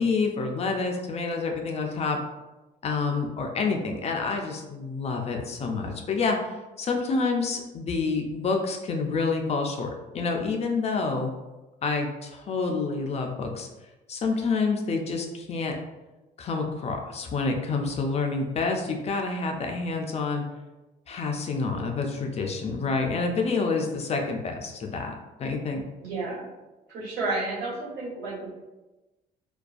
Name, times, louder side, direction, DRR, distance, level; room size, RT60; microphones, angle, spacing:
voice 1, 0.0-2.2 2.8-11.3 11.8-13.7 14.1-15.7 16.4-20.4 21.1-25.1 25.4-25.8, left 4 dB, 40° left, 2 dB, 0.4 m, -28 dB
voice 2, 26.0-26.5 26.9-28.6, right 2 dB, 75° right, -7 dB, 1.4 m, -31 dB
2.5 x 2.2 x 2.4 m, 1.1 s
cardioid pair, 110°, 17 cm